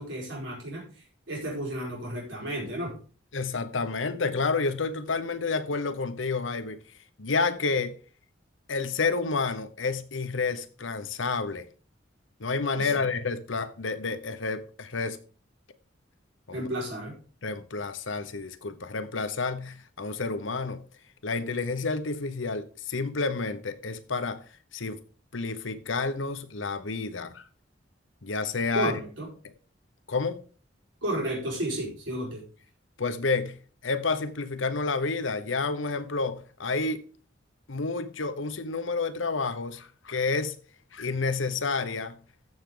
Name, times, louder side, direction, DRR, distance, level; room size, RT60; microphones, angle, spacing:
voice 1, 0.0-2.9 12.7-12.9 16.5-17.1 28.7-29.3 31.0-32.4, right 1 dB, 80° right, 5.0 m, -32 dB
voice 2, 3.3-6.8 7.2-7.9 8.7-11.7 12.4-15.2 16.5-16.7 17.4-20.8 21.2-24.4 24.7-25.0 25.3-27.4 28.2-28.9 30.1-30.4 33.0-37.0 37.7-40.6 40.9-42.2, left 4 dB, 90° left, 1.0 m, -30 dB
14.5 x 6.4 x 3.9 m
head